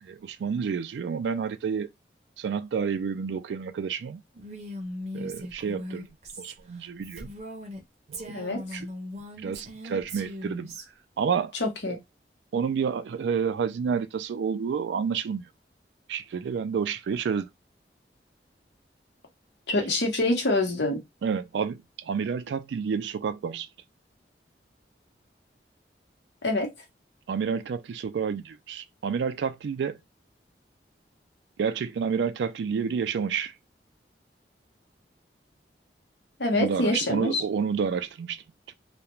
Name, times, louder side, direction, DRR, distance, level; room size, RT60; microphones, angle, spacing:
voice 1, 0.0-1.9 2.4-4.2 5.1-6.1 6.4-7.3 8.1-8.9 9.2-10.7 11.2-11.5 11.9-12.0 12.5-15.5 16.1-17.5 21.2-23.7 27.3-30.0 31.6-33.5 36.5-38.7, right 6 dB, 80° right, 0.3 m, -29 dB
Female speech woman speaking, 4.3-7.8 8.1-10.8, equal, 40° right, 0.6 m, -39 dB
voice 2, 8.3-8.8 11.6-12.0 19.7-21.0 26.4-26.7 36.4-37.4, left 2 dB, 75° left, 0.9 m, -26 dB
2.4 x 2.1 x 2.9 m
head